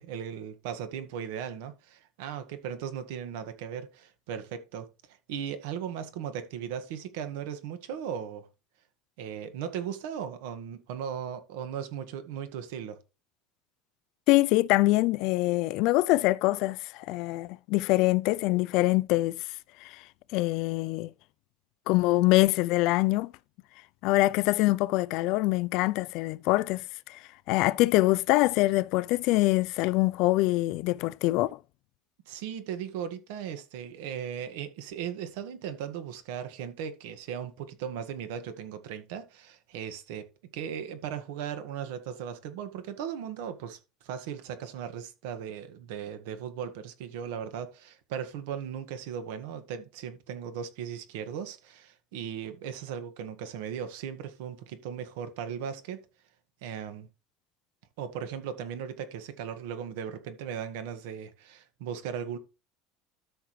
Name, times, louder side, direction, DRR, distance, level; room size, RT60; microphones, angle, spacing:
voice 1, 0.0-4.9 5.3-8.5 9.2-13.0 32.3-40.3 40.5-56.0 56.6-57.1 58.0-62.4, right 8 dB, 80° right, 1.7 m, -37 dB
voice 2, 14.3-19.4 19.8-20.0 20.3-21.1 21.9-23.3 24.0-31.6, left 19 dB, 55° left, 0.3 m, -24 dB
13.0 x 6.0 x 3.2 m
cardioid pair, 165°, 0 cm